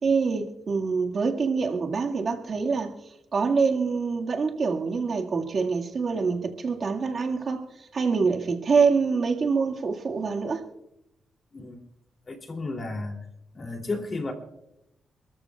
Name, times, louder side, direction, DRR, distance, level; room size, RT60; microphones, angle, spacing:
voice 1, 0.0-2.9 3.3-7.7 7.9-10.6, right 5 dB, 55° right, 1 dB, 1.9 m, -25 dB
voice 2, 12.3-13.2 13.5-14.3, left 3 dB, 40° left, 3 dB, 3.0 m, -33 dB
28.5 x 13.5 x 2.4 m, 0.87 s
cardioid pair, 85°, 0 cm